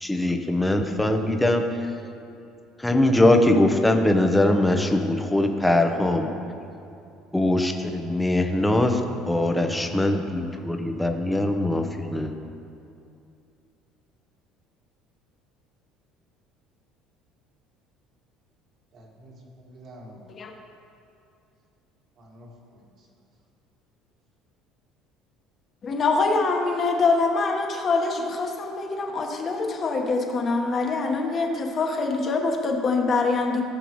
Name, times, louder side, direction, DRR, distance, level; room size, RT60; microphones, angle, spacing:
voice 1, 0.0-1.9 2.8-6.3 7.3-9.0 9.3-12.3, left 1 dB, 5° left, 4 dB, 0.8 m, -22 dB
voice 2, 18.9-20.2 22.2-23.1, equal, 45° right, -2 dB, 2.1 m, -48 dB
voice 3, 25.8-33.6, left 3 dB, 35° left, 1 dB, 1.3 m, -24 dB
17.5 x 6.8 x 3.1 m, 2.6 s
cardioid pair, 130°, 0 cm